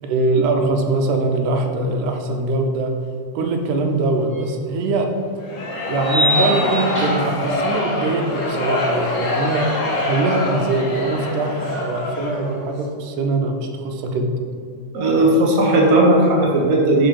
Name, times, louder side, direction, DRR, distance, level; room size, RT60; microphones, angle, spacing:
voice 1, 0.0-2.9 3.4-5.1 5.9-9.6 10.1-14.3, right 2 dB, 80° right, 3 dB, 2.3 m, -22 dB
sound 1, 4.4-4.5 6.0-7.5, equal, 35° right, 1.6 m, -23 dB
sound 2, 5.4-12.6, left 2 dB, 55° left, 1.5 m, -24 dB
voice 2, 14.9-17.1, right 1 dB, 65° right, -2 dB, 0.8 m, -16 dB
10.5 x 4.8 x 3.8 m, 2.2 s
omnidirectional pair, 3.6 m